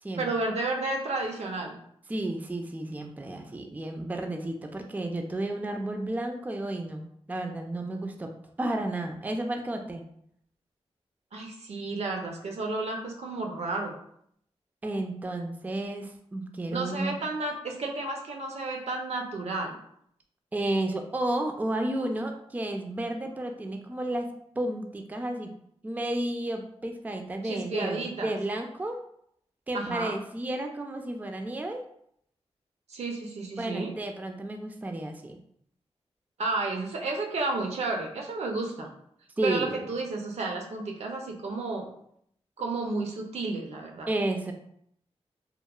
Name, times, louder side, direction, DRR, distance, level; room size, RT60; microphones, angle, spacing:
voice 1, 0.2-1.8 11.3-14.0 16.7-19.8 27.4-28.4 29.7-30.1 32.9-34.0 36.4-38.9 39.4-41.9 42.6-44.1, right 3 dB, 70° right, 2 dB, 0.5 m, -32 dB
voice 2, 2.1-8.3 8.6-10.0 14.8-17.1 20.5-24.3 24.6-25.5 25.8-29.0 29.7-31.8 33.6-35.4 39.4-39.8 44.1-44.5, right 1 dB, 15° right, 4 dB, 0.3 m, -32 dB
2.9 x 2.0 x 2.3 m, 0.70 s
cardioid pair, 55°, 11 cm